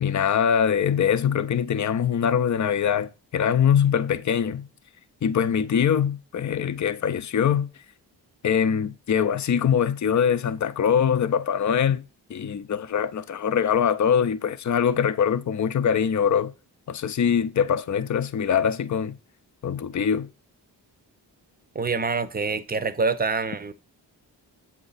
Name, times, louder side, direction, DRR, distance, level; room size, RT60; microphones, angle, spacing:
voice 1, 0.0-4.7 5.2-7.7 8.4-12.0 12.3-16.5 16.9-19.2 19.6-20.3, left 8 dB, 40° left, 0.6 m, -23 dB
voice 2, 21.7-23.7, right 4 dB, 20° right, 0.7 m, -26 dB
7.8 x 3.0 x 4.0 m
supercardioid pair, 40°, 44 cm